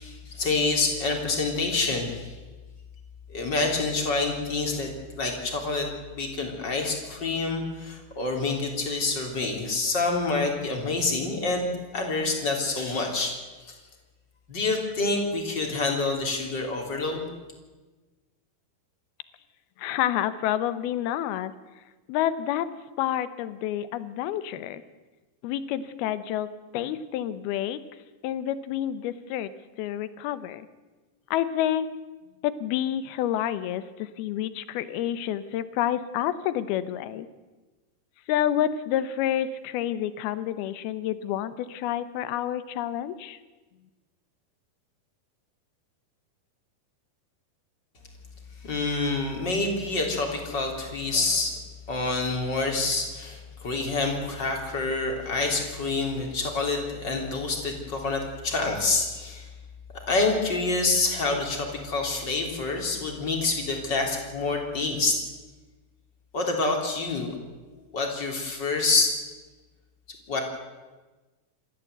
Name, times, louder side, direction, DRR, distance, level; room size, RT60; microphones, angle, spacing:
voice 1, 0.0-2.3 3.3-4.9 5.2-13.3 13.7-13.8 14.5-17.3 48.6-51.6 51.9-59.5 60.1-65.2 66.3-67.4 67.7-69.1 70.3-70.4, left 3 dB, 30° left, 2 dB, 3.6 m, -27 dB
voice 2, 19.8-21.5 22.1-22.7 23.0-24.8 25.4-26.5 26.7-27.8 28.2-29.5 29.8-30.7 31.3-31.9 32.4-37.3 38.3-43.4, left 11 dB, 75° left, 14 dB, 2.7 m, -28 dB
28.0 x 14.0 x 8.0 m, 1.2 s
omnidirectional pair, 4.7 m